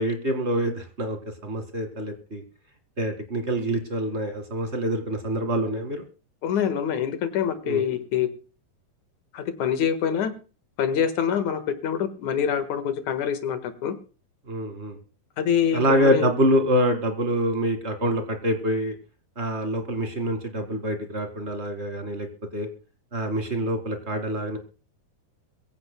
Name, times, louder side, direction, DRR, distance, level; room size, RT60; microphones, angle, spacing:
voice 1, 0.0-2.4 3.0-6.0 7.6-7.8 14.5-15.0 15.7-18.9 19.3-22.3 22.5-22.7 23.1-24.6, equal, 30° right, 7 dB, 1.2 m, -26 dB
voice 2, 6.4-8.3 9.3-10.3 10.8-14.0 15.4-16.3, left 8 dB, 60° left, 10 dB, 2.5 m, -25 dB
23.0 x 16.0 x 2.2 m, 0.35 s
omnidirectional pair, 4.4 m